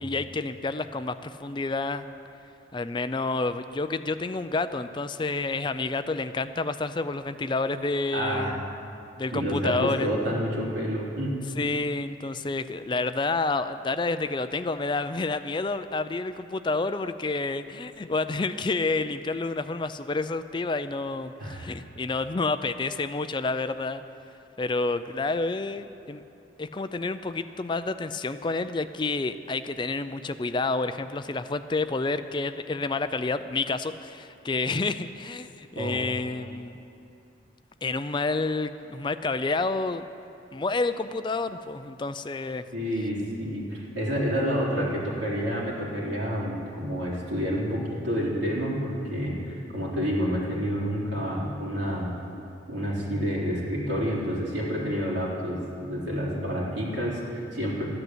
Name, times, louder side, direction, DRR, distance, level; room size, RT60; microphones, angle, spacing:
voice 1, 0.0-2.1 2.7-8.6 9.2-10.1 11.6-24.0 24.6-26.2 26.6-36.8 37.8-40.0 40.5-42.6, left 3 dB, 25° left, 11 dB, 0.4 m, -29 dB
voice 2, 8.1-8.6 9.3-11.3 21.4-21.6 35.8-36.0 42.7-52.1 52.7-57.8, equal, 75° right, -6 dB, 4.0 m, -29 dB
13.5 x 11.0 x 8.0 m, 2.7 s
head